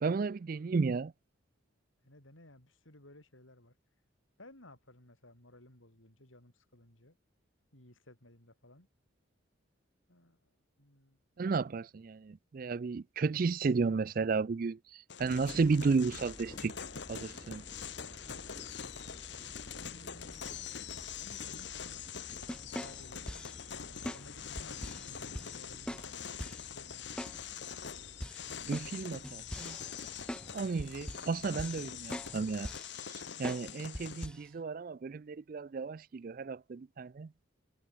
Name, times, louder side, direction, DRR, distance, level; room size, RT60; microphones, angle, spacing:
voice 1, 0.0-1.1 11.4-16.7 17.1-17.6 28.6-29.8 30.5-32.7 33.1-37.3, right 4 dB, 45° right, 0.4 m, -33 dB
voice 2, 2.0-3.7 4.4-7.2 7.7-8.9 10.1-10.5 10.8-11.2 19.3-20.7 21.2-23.3 23.9-27.2, left 1 dB, 75° left, 7.7 m, -58 dB
sound 1, 15.1-34.3, left 8 dB, 60° left, 1.2 m, -44 dB
sound 2, 15.2-32.6, equal, 20° left, 3.3 m, -54 dB
sound 3, 22.5-23.6 24.1-24.2 24.6-25.1 25.3-25.5 25.9-26.1 26.4-26.7 27.2-27.4 27.7-27.8 28.2-30.5 30.8-31.3 31.6-31.9 32.1-32.3 32.6-32.9 33.4-33.7 33.9-34.5, equal, 5° left, 4.5 m, -42 dB
head